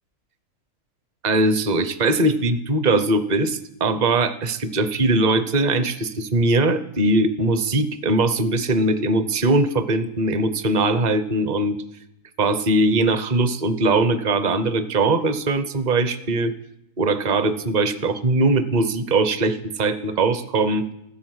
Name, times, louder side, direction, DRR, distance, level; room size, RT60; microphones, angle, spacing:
voice 1, 1.2-11.8 12.4-16.5 17.0-20.9, right 2 dB, 35° right, 12 dB, 0.8 m, -21 dB
16.0 x 11.5 x 7.9 m, 0.84 s
omnidirectional pair, 1.7 m